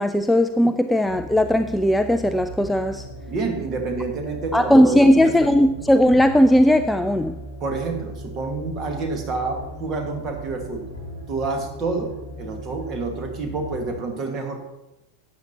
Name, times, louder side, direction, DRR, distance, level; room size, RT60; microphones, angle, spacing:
voice 1, 0.0-3.1 4.5-7.4, equal, 5° left, 0.3 m, -17 dB
sound 1, 1.0-14.0, equal, 85° right, 3.6 m, -38 dB
voice 2, 3.3-5.5 7.6-10.8 11.3-14.6, right 3 dB, 30° right, 1.6 m, -28 dB
12.5 x 8.6 x 2.8 m
figure-of-eight pair, 90°, 0 cm